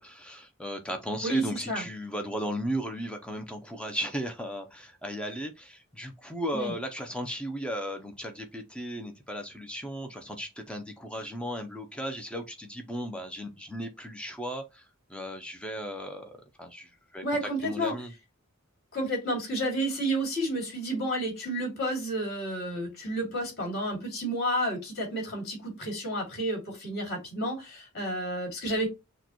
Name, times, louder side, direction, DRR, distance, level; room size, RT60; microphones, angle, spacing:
voice 1, 0.0-14.8 15.1-18.1, equal, 5° left, 0.5 m, -36 dB
voice 2, 1.2-1.9 6.5-6.7 17.2-17.9 18.9-28.9, right 1 dB, 50° left, 2.6 m, -31 dB
6.3 x 2.2 x 2.9 m
head